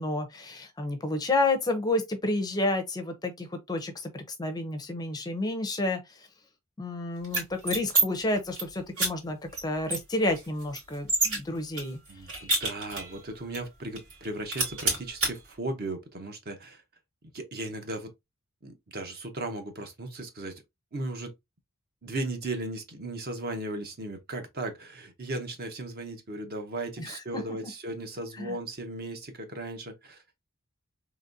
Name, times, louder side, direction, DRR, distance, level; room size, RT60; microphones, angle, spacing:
voice 1, 0.0-6.0 6.8-9.4 9.6-12.0 27.0-27.7 28.4-28.6, left 2 dB, 15° left, 0.5 m, -30 dB
sound 1, 7.2-8.0 8.4-8.6 9.0-9.1 9.5-9.6 9.9-11.4 11.8-13.2 13.5-13.6 14.0-14.2 14.5-15.3, right 3 dB, 75° right, 2.8 m, -27 dB
voice 2, 12.1-16.8 17.3-18.1 18.6-20.6 20.9-21.3 22.0-30.2, right 2 dB, 45° right, 0.8 m, -36 dB
4.0 x 3.0 x 2.5 m
head